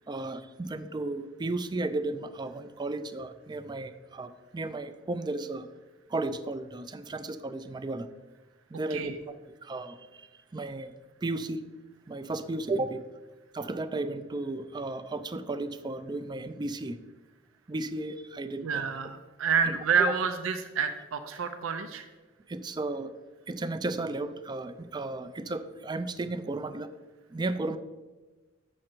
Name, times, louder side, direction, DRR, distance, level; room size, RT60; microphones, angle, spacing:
voice 1, 0.1-5.7 6.1-8.1 8.7-10.9 11.2-11.6 12.1-13.0 13.5-17.0 17.7-18.8 19.7-19.8 22.5-23.1 23.5-26.9 27.3-27.8, right 2 dB, 20° right, 11 dB, 0.4 m, -34 dB
voice 2, 18.6-22.1, right 6 dB, 80° right, 8 dB, 0.5 m, -28 dB
7.5 x 6.3 x 4.4 m, 1.2 s
head